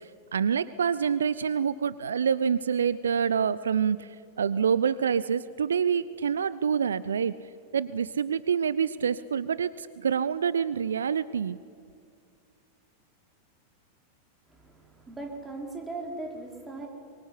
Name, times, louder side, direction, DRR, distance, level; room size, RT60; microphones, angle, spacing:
voice 1, 0.0-7.3 7.7-11.6, right 7 dB, 70° right, 17 dB, 0.6 m, -27 dB
voice 2, 14.5-16.9, right 2 dB, 15° right, 1 dB, 4.9 m, -39 dB
24.0 x 22.5 x 9.9 m, 2.3 s
figure-of-eight pair, 90°, 0 cm